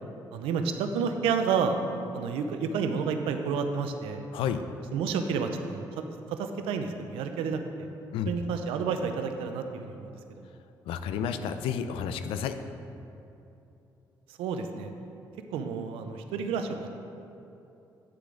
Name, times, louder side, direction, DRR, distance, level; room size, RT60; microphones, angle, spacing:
voice 1, 0.3-1.8 2.1-4.2 4.9-7.9 8.3-10.5 14.4-14.9 15.5-16.9, right 5 dB, 85° right, 7 dB, 0.6 m, -30 dB
voice 2, 10.9-12.6, left 8 dB, 80° left, 9 dB, 0.5 m, -31 dB
9.3 x 6.7 x 3.8 m, 2.8 s
supercardioid pair, 60°, 9 cm